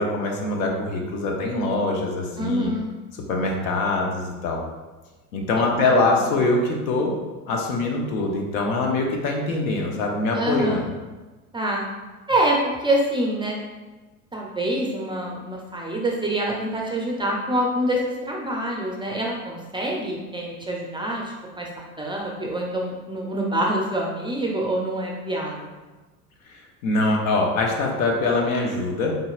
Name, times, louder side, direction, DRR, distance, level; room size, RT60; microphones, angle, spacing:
voice 1, 0.0-2.7 3.1-4.6 5.3-7.1 7.5-10.8 26.5-29.2, left 2 dB, 70° left, 1 dB, 1.0 m, -23 dB
voice 2, 2.4-2.9 5.6-6.3 10.3-10.9 11.5-11.8 12.3-13.6 14.3-21.7 22.0-25.7, right 1 dB, 10° right, -1 dB, 0.5 m, -26 dB
4.0 x 3.9 x 2.4 m, 1.2 s
hypercardioid pair, 80°, 44 cm